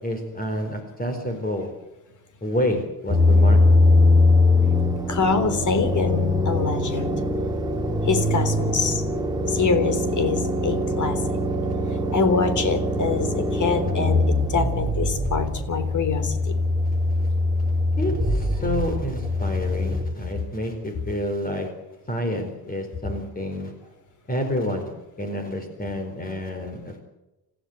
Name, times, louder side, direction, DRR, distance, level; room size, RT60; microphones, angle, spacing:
voice 1, 0.0-1.7 2.4-3.9 18.0-21.7 22.1-23.7 24.3-24.9 25.2-27.0, left 1 dB, 20° left, 5 dB, 4.5 m, -29 dB
sound 1, 3.1-20.0, left 2 dB, 10° right, 2.6 m, -22 dB
voice 2, 5.1-7.2 8.0-9.0 9.5-11.2 12.1-16.6, left 5 dB, 45° left, 10 dB, 3.8 m, -25 dB
29.0 x 15.5 x 8.1 m, 0.99 s
cardioid pair, 145°, 41 cm